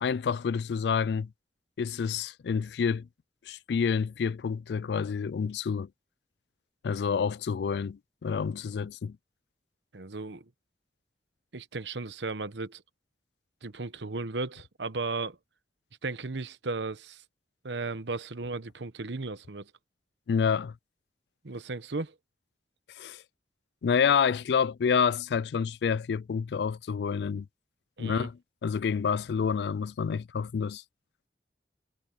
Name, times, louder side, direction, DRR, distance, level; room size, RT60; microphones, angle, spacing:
voice 1, 0.0-1.3 1.8-3.1 3.5-5.9 6.8-9.2 20.3-20.7 23.0-23.2 23.8-27.5 28.0-30.8, left 6 dB, 70° left, 0.3 m, -28 dB
voice 2, 9.9-10.4 11.5-12.8 13.6-15.4 16.0-17.2 17.6-19.7 21.4-22.1 28.0-28.3, right 3 dB, 85° right, 1.0 m, -35 dB
head